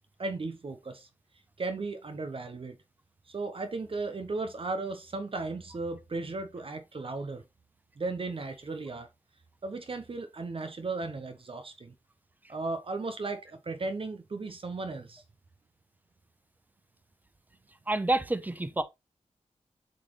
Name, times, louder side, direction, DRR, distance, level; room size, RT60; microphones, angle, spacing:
voice 1, 0.2-1.1 1.6-2.8 3.3-7.4 8.0-9.1 9.6-11.9 12.5-15.2, right 3 dB, 50° right, 0.8 m, -36 dB
voice 2, 17.9-18.8, right 2 dB, 15° right, 0.7 m, -28 dB
7.6 x 4.0 x 3.1 m
wide cardioid pair, 90°, 12 cm